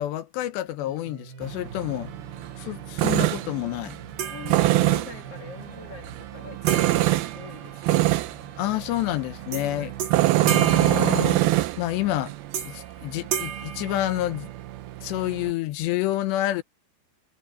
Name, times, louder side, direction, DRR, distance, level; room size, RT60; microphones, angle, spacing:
voice 1, 0.0-2.1 2.6-4.0 8.6-9.9 10.4-11.5 11.8-12.3 12.6-14.5 15.0-16.6, left 15 dB, 75° left, 2.9 m, -28 dB
sound 1, 0.8-11.2, right 5 dB, 65° right, 5.6 m, -47 dB
Tools, 1.4-15.5, right 16 dB, 85° right, 2.2 m, -26 dB
sound 2, 4.2-5.2 6.7-8.2 9.5-9.7 10.0-11.8 12.5-12.9 13.3-14.7, right 8 dB, 50° right, 4.6 m, -33 dB
voice 2, 4.3-8.1 9.5-9.9, left 6 dB, 60° left, 1.6 m, -43 dB
omnidirectional pair, 5.4 m